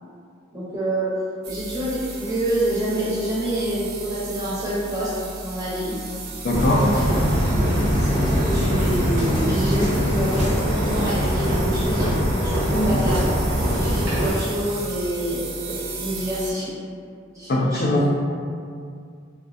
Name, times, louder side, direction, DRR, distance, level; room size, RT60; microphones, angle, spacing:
voice 1, 0.5-1.1 1.5-6.0 6.7-13.2 13.7-16.8 17.3-18.1, right 1 dB, 15° right, -9 dB, 0.6 m, -27 dB
sound 1, 1.4-16.5, right 3 dB, 50° right, 0.4 m, -36 dB
voice 2, 6.4-6.9 12.7-13.0 17.5-18.1, left 1 dB, 50° left, -2 dB, 0.3 m, -20 dB
sound 2, 6.5-14.3, equal, 70° right, 0.8 m, -22 dB
2.5 x 2.4 x 2.3 m, 2.2 s
head